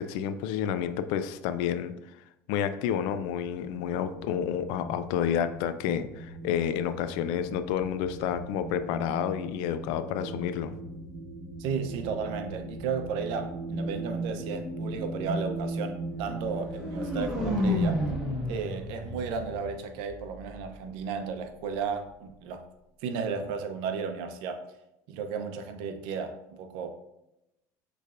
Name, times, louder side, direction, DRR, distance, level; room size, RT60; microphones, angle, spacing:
voice 1, 0.0-1.9 2.5-10.8, left 9 dB, 75° left, 11 dB, 0.4 m, -30 dB
sound 1, 2.8-17.6, right 2 dB, 50° right, 1.5 m, -38 dB
voice 2, 11.6-18.0 18.5-22.6 23.0-24.6 25.1-27.0, right 5 dB, 70° right, 7 dB, 0.6 m, -34 dB
sound 2, 16.5-20.5, left 1 dB, 10° right, 1.4 m, -31 dB
6.5 x 3.2 x 2.5 m, 0.89 s
supercardioid pair, 110°, 8 cm